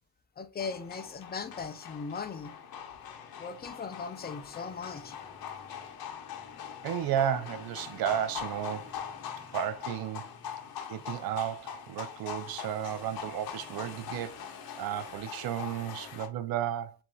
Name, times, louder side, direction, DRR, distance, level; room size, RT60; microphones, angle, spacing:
voice 1, 0.4-2.6 3.4-5.2, left 5 dB, 25° left, 0.5 m, -38 dB
sound 1, 0.6-16.3, left 8 dB, 65° left, 1.0 m, -42 dB
voice 2, 6.8-8.9 9.5-10.3 10.9-14.4 14.8-16.9, right 10 dB, 65° right, 0.6 m, -33 dB
7.3 x 2.7 x 2.3 m
cardioid pair, 115°, 40 cm